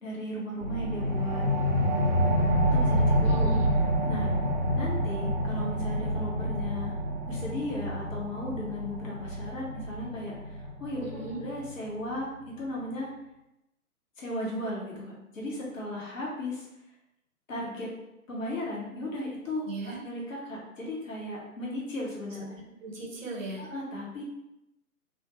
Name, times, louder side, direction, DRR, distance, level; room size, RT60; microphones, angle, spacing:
voice 1, 0.0-1.5 2.7-3.5 4.1-4.3 4.7-6.9 7.3-11.0 11.4-13.1 14.2-16.7 17.5-17.9 18.3-19.7 20.0-22.6 23.6-24.2, left 1 dB, 55° left, -4 dB, 1.1 m, -36 dB
sound 1, 0.6-11.7, equal, 30° right, 0.5 m, -28 dB
voice 2, 3.2-3.7 11.0-11.4 19.7-20.0 22.8-23.7, right 2 dB, 55° right, -1 dB, 0.9 m, -37 dB
2.3 x 2.3 x 2.9 m, 0.89 s
figure-of-eight pair, 130°, 45 cm